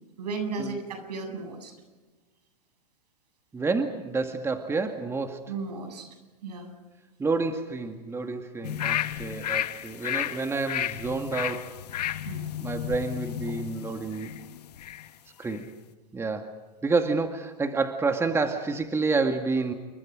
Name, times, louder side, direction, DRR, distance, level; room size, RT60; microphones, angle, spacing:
voice 1, 0.2-1.7 5.5-6.1 6.4-6.7 12.3-12.5, right 4 dB, 75° right, 7 dB, 7.8 m, -34 dB
voice 2, 3.5-5.4 7.2-11.7 12.6-14.3 15.4-15.7 16.1-19.7, right 3 dB, 10° right, 6 dB, 2.0 m, -29 dB
sound 1, 8.6-15.1 15.5-15.6, left 12 dB, 75° left, 1.3 m, -33 dB
29.0 x 24.0 x 5.1 m, 1.3 s
hypercardioid pair, 115°, 21 cm